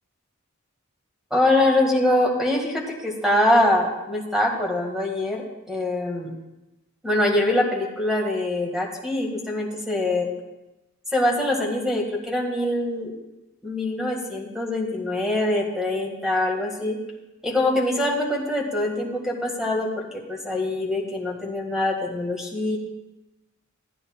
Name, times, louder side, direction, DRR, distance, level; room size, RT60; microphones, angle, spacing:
voice 1, 1.3-6.3 7.0-10.3 11.1-13.1 13.6-17.0 17.4-22.8, left 1 dB, ahead, -1 dB, 1.8 m, -24 dB
16.0 x 9.6 x 2.3 m, 1.0 s
head